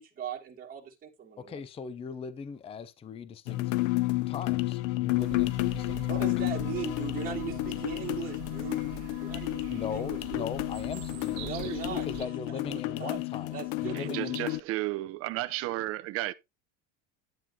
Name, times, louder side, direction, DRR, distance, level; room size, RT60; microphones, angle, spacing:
voice 1, 0.0-1.6 6.0-8.8 9.2-10.5 11.2-13.2 13.5-14.2, right 7 dB, 20° right, 2.3 m, -39 dB
voice 2, 1.4-3.6 4.3-6.3 9.7-11.5 11.8-14.4, left 6 dB, 15° left, 0.5 m, -39 dB
sound 1, 3.5-14.6, left 20 dB, 80° left, 0.6 m, -31 dB
sound 2, 5.2-12.3, right 11 dB, 65° right, 1.7 m, -45 dB
voice 3, 13.9-16.3, right 16 dB, 35° right, 0.7 m, -33 dB
10.5 x 9.2 x 2.8 m
cardioid pair, 150°, 39 cm